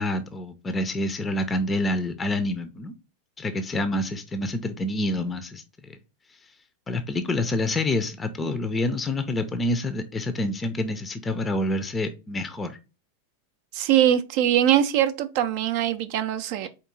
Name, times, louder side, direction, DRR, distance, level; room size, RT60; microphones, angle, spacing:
voice 1, 0.0-2.9 3.4-6.0 6.9-12.8, left 1 dB, 15° left, 0.5 m, -27 dB
voice 2, 13.7-16.7, right 11 dB, 45° right, 0.4 m, -22 dB
4.4 x 2.7 x 3.8 m
figure-of-eight pair, 90°, 0 cm